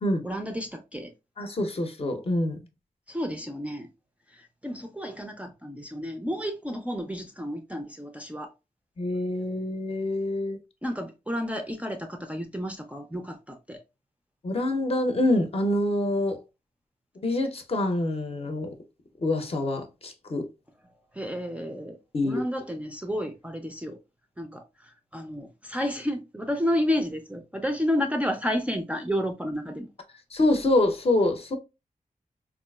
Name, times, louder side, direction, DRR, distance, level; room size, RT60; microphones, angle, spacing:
voice 1, 0.2-1.1 3.1-3.9 4.3-8.5 10.8-13.8 21.1-22.0 22.2-24.0 24.4-29.9, equal, 10° right, 0.4 m, -31 dB
voice 2, 1.4-2.6 9.0-10.6 14.4-16.4 17.2-18.7 19.2-20.4 22.1-22.4 30.3-31.6, left 1 dB, 40° left, 0.6 m, -26 dB
3.7 x 2.4 x 2.2 m
wide cardioid pair, 140°, 15 cm